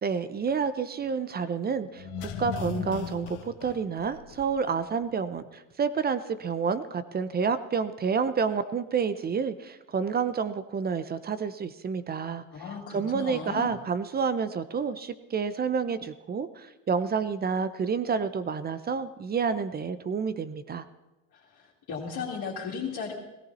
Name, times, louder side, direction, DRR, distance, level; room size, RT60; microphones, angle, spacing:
voice 1, 0.0-12.4 12.9-20.8, right 6 dB, 20° right, 13 dB, 0.6 m, -29 dB
sound 1, 1.9-4.8 5.0-5.1, left 8 dB, 85° left, 1.8 m, -37 dB
voice 2, 12.5-13.7 21.3-23.1, left 6 dB, 45° left, -7 dB, 2.8 m, -36 dB
17.5 x 14.5 x 4.2 m, 1.0 s
supercardioid pair, 125°, 45 cm